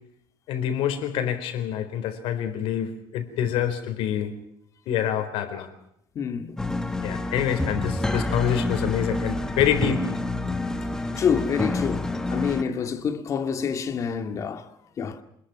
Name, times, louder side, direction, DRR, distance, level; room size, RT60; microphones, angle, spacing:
voice 1, 0.5-4.4 4.9-5.7 7.0-10.1, left 9 dB, 85° left, 4.2 m, -26 dB
voice 2, 6.2-6.6 11.2-14.6 15.0-15.2, left 7 dB, 35° left, 2.0 m, -27 dB
sound 1, 6.6-12.6, left 2 dB, 5° left, 1.5 m, -28 dB
27.0 x 21.0 x 6.1 m
cardioid pair, 175°, 9 cm